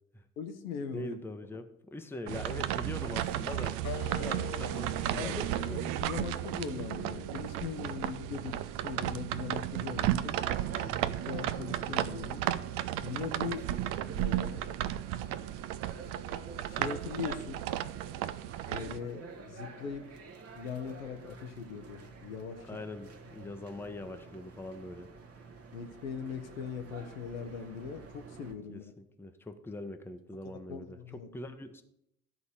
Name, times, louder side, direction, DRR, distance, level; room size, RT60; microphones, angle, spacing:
voice 1, 0.4-1.2 5.2-10.4 11.3-12.5 13.0-13.7 14.1-14.6 16.7-17.6 18.7-20.1 20.5-22.6 25.7-28.9 30.4-31.3, left 6 dB, 75° left, 6 dB, 1.0 m, -40 dB
voice 2, 0.9-3.8 4.2-5.7 10.6-11.0 22.7-25.1 28.7-31.8, left 1 dB, 5° left, 7 dB, 0.9 m, -43 dB
sound 1, 2.3-19.0, right 13 dB, 50° right, 0.6 m, -34 dB
Wind instrument woodwind instrument, 3.8-8.9, left 11 dB, 40° left, 0.7 m, -46 dB
sound 2, 10.3-28.5, right 4 dB, 35° right, 1.2 m, -49 dB
12.5 x 4.1 x 6.7 m, 0.78 s
figure-of-eight pair, 60°, 42 cm